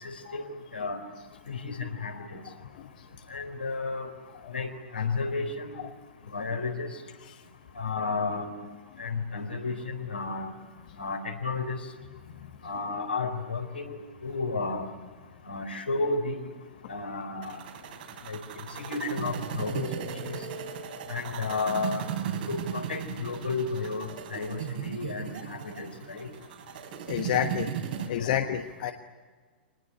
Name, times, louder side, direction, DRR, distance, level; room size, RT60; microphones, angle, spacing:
voice 1, 0.0-1.0 1.5-2.2 3.3-4.1 4.5-5.8 6.3-6.9 7.8-8.5 9.0-10.5 11.0-11.8 12.6-14.9 15.5-16.4 16.9-17.6 18.3-18.4 18.9-19.9 20.2-20.4 21.1-22.0 22.5-26.3 28.2-28.4, left 4 dB, 80° left, 4 dB, 4.1 m, -32 dB
sound 1, 17.4-28.1, right 8 dB, 55° right, 3.5 m, -36 dB
voice 2, 27.1-27.7 28.1-28.9, left 10 dB, 55° left, 7 dB, 1.3 m, -29 dB
25.5 x 20.0 x 9.9 m, 1.5 s
figure-of-eight pair, 105°, 5 cm